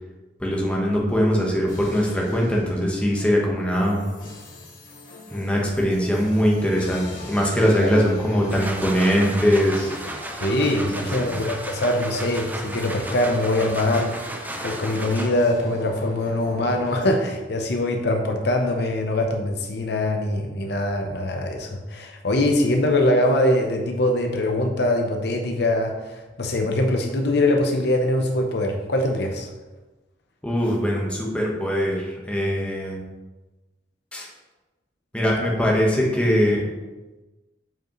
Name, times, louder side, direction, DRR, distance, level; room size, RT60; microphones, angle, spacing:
voice 1, 0.4-4.0 5.3-9.9 11.2-11.3 30.4-33.0 34.1-34.3 35.1-36.6, equal, 5° left, -2 dB, 1.2 m, -21 dB
sound 1, 1.7-17.0, left 2 dB, 45° left, 1.8 m, -41 dB
sound 2, 8.3-15.6, right 1 dB, 10° right, 0.5 m, -34 dB
voice 2, 10.4-14.1 14.6-29.5, left 1 dB, 65° left, 3 dB, 0.7 m, -23 dB
7.4 x 5.0 x 3.1 m, 1.1 s
head